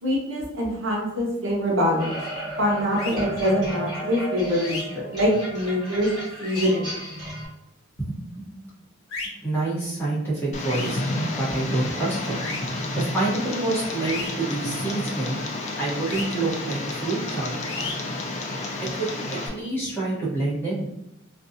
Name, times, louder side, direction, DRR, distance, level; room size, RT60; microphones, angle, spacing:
voice 1, 0.0-2.2 2.6-6.1 6.4-6.9, equal, 65° right, -2 dB, 0.7 m, -24 dB
sound 1, 2.0-7.5, right 1 dB, 20° right, 1.3 m, -34 dB
sound 2, 3.0-3.2 4.6-4.8 6.4-6.7 9.1-9.3 10.7-10.9 12.4-12.6 14.0-14.3 16.1-16.2 17.6-17.9, left 3 dB, 75° left, 0.6 m, -33 dB
voice 2, 8.0-8.5 9.4-11.0 11.4-12.4 12.9-15.4 15.8-17.6 18.8-20.9, right 2 dB, 10° left, -9 dB, 0.9 m, -27 dB
Tick, 10.5-19.5, left 2 dB, 35° left, 0.3 m, -30 dB
2.5 x 2.2 x 2.5 m, 0.85 s
head